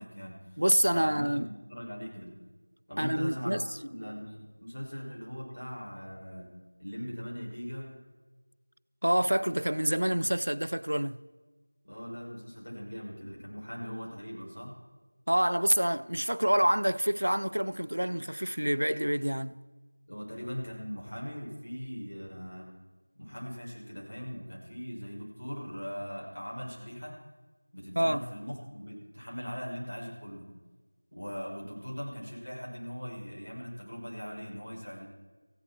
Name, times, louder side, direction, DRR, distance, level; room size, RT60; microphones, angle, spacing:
voice 1, 0.0-0.6 0.9-2.4 2.9-6.5 6.8-8.0 11.8-14.8 20.1-22.7 23.2-27.1 27.7-30.5 31.1-35.1, equal, 60° left, 6.3 m, -40 dB
voice 2, 0.6-1.5 3.0-3.6 9.0-11.2 15.3-19.6 28.0-28.2, equal, 80° right, 0.5 m, -27 dB
19.0 x 15.0 x 4.5 m
figure-of-eight pair, 175°, 0 cm